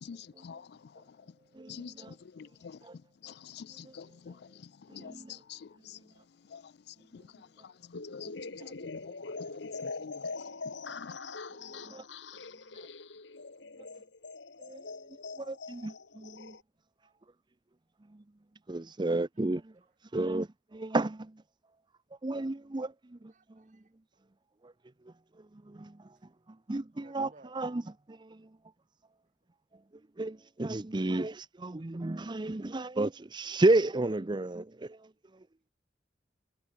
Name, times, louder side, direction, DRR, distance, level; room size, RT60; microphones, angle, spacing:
voice 1, 1.5-2.1 2.8-3.0 3.8-3.9 4.9-5.4 8.6-8.7 11.9-12.0 14.6-14.8 15.4-16.5 18.7-19.7 20.0-21.3 22.2-23.2 24.6-24.7 25.7-25.9 26.7-27.8 28.1-28.5 30.2-35.0, right 2 dB, 25° right, 0.6 m, -32 dB
voice 2, 2.4-2.8 3.2-4.3 4.9-5.1 5.5-5.6 6.5-6.6 8.1-8.3 8.8-9.0 9.6-9.7 10.0-10.1 11.0-11.1, left 6 dB, 65° left, 0.4 m, -45 dB
sound 1, 7.9-16.6, left 3 dB, 80° left, 1.7 m, -43 dB
voice 3, 23.3-23.9 27.0-27.6 32.5-32.7, right 2 dB, 45° right, 3.4 m, -60 dB
head